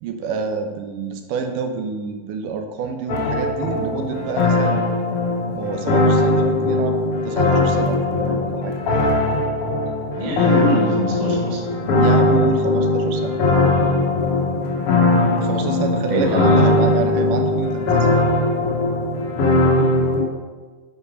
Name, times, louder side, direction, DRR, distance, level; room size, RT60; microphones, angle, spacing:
voice 1, 0.0-4.8 5.5-7.0 7.2-8.7 10.6-10.7 11.9-13.4 15.4-18.2, right 5 dB, 85° right, 4 dB, 2.4 m, -28 dB
sound 1, 3.1-20.2, left 2 dB, 60° left, 1.8 m, -19 dB
voice 2, 10.2-11.6 16.1-16.9, equal, 40° right, -2 dB, 0.6 m, -23 dB
9.4 x 4.8 x 5.3 m, 1.4 s
omnidirectional pair, 3.7 m